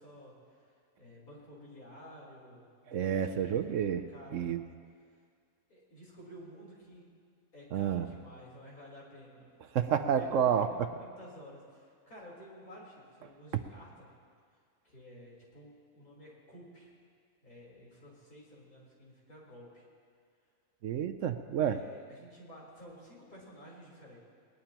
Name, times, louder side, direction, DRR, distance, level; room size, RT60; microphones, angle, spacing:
voice 1, 0.0-4.5 5.7-7.1 7.5-9.5 10.2-14.1 14.8-16.9 17.4-19.8 21.7-24.2, equal, 75° left, -5 dB, 4.4 m, -52 dB
voice 2, 2.9-4.0 4.3-4.6 7.7-8.1 9.7-10.7 20.8-21.8, right 8 dB, 65° right, 9 dB, 0.9 m, -29 dB
20.0 x 19.5 x 3.0 m, 2.1 s
omnidirectional pair, 1.5 m